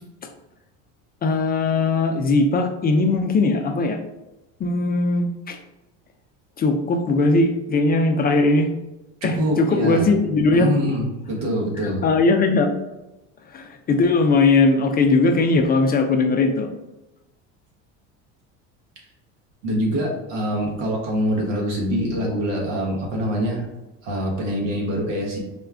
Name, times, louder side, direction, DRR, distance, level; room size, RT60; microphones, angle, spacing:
voice 1, 1.2-4.0 4.6-5.6 6.6-8.7 9.2-10.7 11.8-12.7 13.5-16.7, left 3 dB, 25° left, 6 dB, 0.4 m, -19 dB
voice 2, 9.2-10.1 10.5-12.0 19.6-23.7 24.0-25.4, equal, 85° right, -2 dB, 1.3 m, -24 dB
4.3 x 2.3 x 3.3 m, 0.99 s
supercardioid pair, 95°, 36 cm